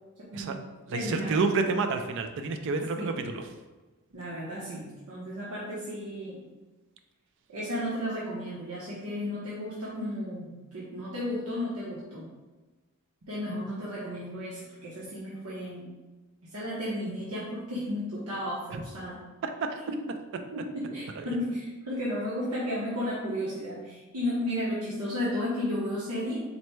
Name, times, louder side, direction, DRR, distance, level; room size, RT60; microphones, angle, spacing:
voice 1, 0.2-0.6 0.9-1.4 3.0-3.2 4.1-6.4 7.5-12.3 13.3-15.9 16.5-19.2 20.3-26.4, left 1 dB, 80° right, -7 dB, 0.9 m, -33 dB
voice 2, 0.9-3.4 18.7-18.8 19.4-19.8 21.2-21.3, right 4 dB, 55° right, 6 dB, 0.4 m, -29 dB
4.1 x 2.1 x 4.5 m, 1.2 s
head